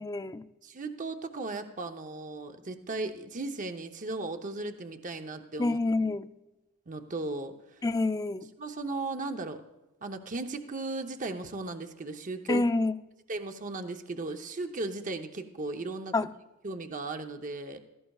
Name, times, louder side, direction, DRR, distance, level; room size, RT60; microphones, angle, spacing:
voice 1, 0.0-0.4 5.6-6.3 7.8-8.5 12.5-12.9 16.1-16.3, left 2 dB, 15° left, 0.4 m, -27 dB
voice 2, 0.6-5.8 6.9-7.8 8.6-9.6 10.0-12.6 13.3-16.1 16.6-17.8, right 2 dB, 35° right, 0.7 m, -36 dB
16.5 x 14.5 x 2.3 m
head